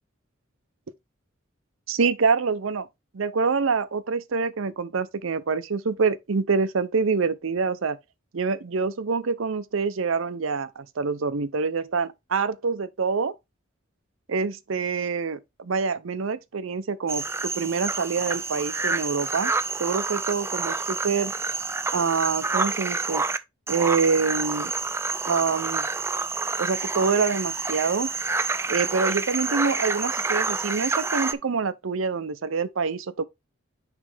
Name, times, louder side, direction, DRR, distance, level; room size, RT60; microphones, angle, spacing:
voice 1, 1.9-2.9 3.1-8.0 8.3-13.3 14.3-19.5 19.8-21.3 21.9-23.2 23.7-24.7 25.3-25.9 26.6-28.1 28.7-33.2, right 5 dB, 80° right, 0.6 m, -26 dB
sound 1, 17.1-23.4 23.7-31.3, right 4 dB, 15° right, 0.3 m, -28 dB
9.8 x 3.3 x 3.3 m
head